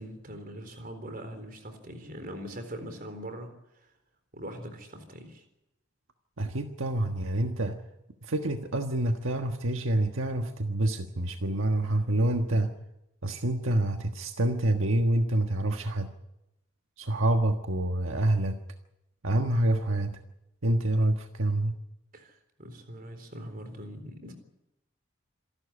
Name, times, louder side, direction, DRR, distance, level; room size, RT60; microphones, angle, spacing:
voice 1, 0.0-3.9 4.3-5.4 22.1-24.3, equal, 45° right, 8 dB, 3.9 m, -42 dB
voice 2, 6.4-7.8 8.2-12.7 13.2-16.1 17.0-18.6 19.2-20.2 20.6-21.8, right 1 dB, 80° right, 5 dB, 1.5 m, -27 dB
27.0 x 12.5 x 9.9 m, 0.89 s
head